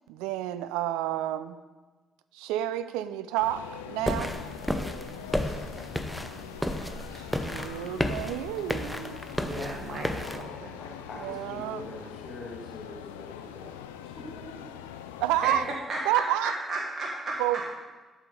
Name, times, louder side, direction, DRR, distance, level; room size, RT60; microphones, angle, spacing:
voice 1, 0.1-1.6 2.3-4.3 7.1-9.2 11.2-11.8 15.2-15.7 16.0-16.5 17.4-17.7, right 13 dB, 75° right, 13 dB, 0.3 m, -30 dB
sound 1, 3.4-15.8, left 9 dB, 80° left, 0.3 m, -43 dB
sound 2, 4.1-10.4, equal, ahead, 0.8 m, -33 dB
voice 2, 9.4-10.7 15.4-15.5 15.9-17.7, right 2 dB, 45° right, -3 dB, 1.5 m, -34 dB
voice 3, 10.7-14.7, left 2 dB, 55° left, -1 dB, 1.8 m, -44 dB
11.5 x 6.4 x 3.8 m, 1.3 s
figure-of-eight pair, 40°, 0 cm